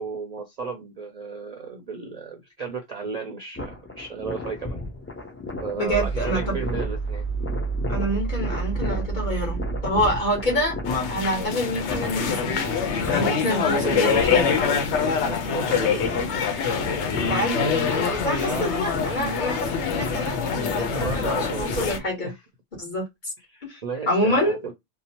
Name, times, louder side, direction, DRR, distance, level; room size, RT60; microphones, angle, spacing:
voice 1, 0.0-4.8 5.6-7.2 10.5-10.7 13.5-14.6 15.2-16.2 18.4-18.7 21.0-22.4 23.5-24.7, right 5 dB, 50° right, 0.5 m, -34 dB
sound 1, 3.6-22.3, left 3 dB, 20° left, 0.3 m, -35 dB
sound 2, 3.7-11.8, right 5 dB, 70° left, 1.3 m, -31 dB
voice 2, 5.8-6.6 7.9-10.8 11.1-12.6 13.1-14.6 17.3-22.3 22.8-23.0 23.7-23.8 24.1-24.6, equal, 45° left, 1.3 m, -27 dB
sound 3, 10.8-22.0, left 6 dB, 90° left, 0.9 m, -25 dB
2.7 x 2.0 x 2.8 m
omnidirectional pair, 1.1 m